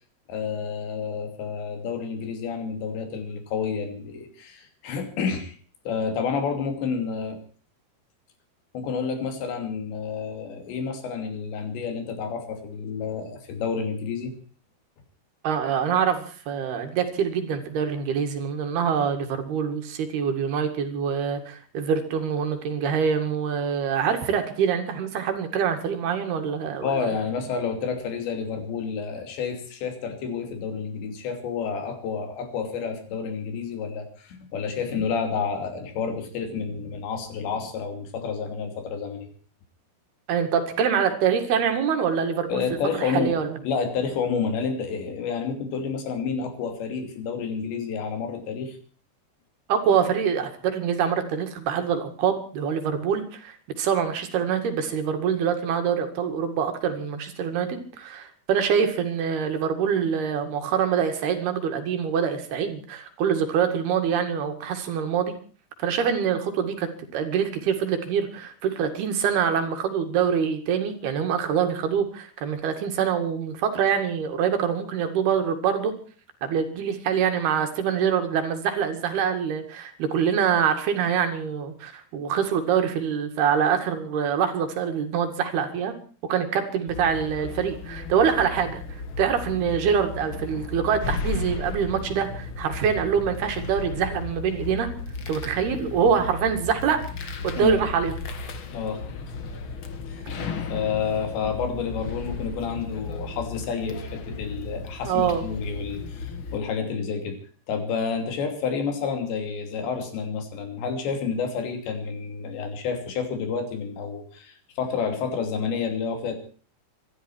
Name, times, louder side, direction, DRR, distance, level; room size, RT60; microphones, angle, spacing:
voice 1, 0.3-5.6 5.9-7.4 8.7-14.3 26.8-39.3 42.5-43.4 43.6-48.8 97.6-97.8 98.7-99.1 100.1-100.3 100.7-107.4 107.7-116.4, left 6 dB, 85° left, 6 dB, 5.0 m, -29 dB
voice 2, 15.4-27.2 40.3-42.6 43.0-43.6 49.7-65.3 65.8-75.9 76.4-85.9 86.3-88.8 89.2-94.9 95.3-98.2 105.1-105.4, right 7 dB, 70° right, 6 dB, 4.0 m, -25 dB
sound 1, 86.9-106.6, left 4 dB, 70° left, 1.2 m, -35 dB
25.0 x 12.5 x 4.6 m, 0.41 s
omnidirectional pair, 4.9 m